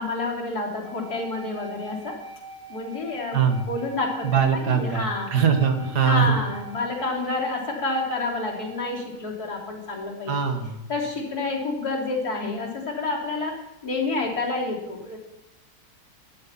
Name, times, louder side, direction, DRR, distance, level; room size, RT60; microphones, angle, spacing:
voice 1, 0.0-2.2 2.7-3.4 3.7-5.3 6.0-10.5 10.9-15.2, left 3 dB, 65° left, -2 dB, 3.8 m, -29 dB
sound 1, 0.8-9.1, right 2 dB, 30° right, 1.9 m, -43 dB
voice 2, 3.3-3.6 4.2-6.4 10.3-10.9, right 7 dB, 80° right, 6 dB, 2.2 m, -22 dB
13.0 x 11.0 x 5.8 m, 0.96 s
omnidirectional pair, 1.7 m